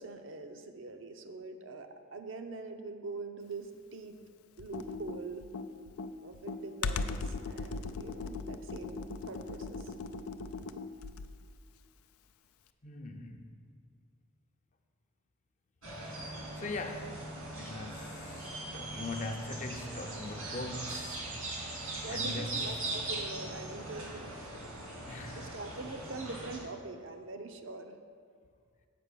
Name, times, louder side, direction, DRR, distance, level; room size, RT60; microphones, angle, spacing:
voice 1, 0.0-4.2 4.6-5.5 6.2-9.9 21.9-24.7 25.3-28.0, right 3 dB, 60° right, 0.6 m, -44 dB
Computer keyboard, 4.6-11.4, left 4 dB, 85° left, 0.4 m, -38 dB
voice 2, 12.8-13.5 15.8-21.7 22.1-22.7 25.1-25.6, left 2 dB, 35° left, 0.6 m, -42 dB
sound 1, 15.8-26.6, right 2 dB, 85° right, 2.3 m, -40 dB
7.6 x 5.4 x 6.8 m
head